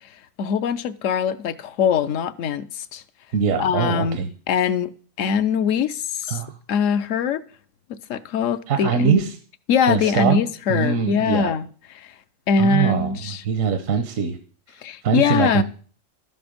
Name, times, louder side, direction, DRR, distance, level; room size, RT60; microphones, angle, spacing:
voice 1, 0.4-3.0 3.6-4.2 4.5-4.9 5.2-6.4 6.7-7.4 7.9-9.1 9.7-11.7 11.9-12.1 12.5-13.4 14.8-15.6, left 6 dB, 75° left, 1.0 m, -22 dB
voice 2, 3.3-4.3 6.3-6.6 8.7-9.4 9.9-10.4 10.7-11.5 12.6-14.4 15.0-15.6, right 6 dB, 80° right, 1.2 m, -22 dB
12.5 x 7.9 x 5.1 m
omnidirectional pair, 1.4 m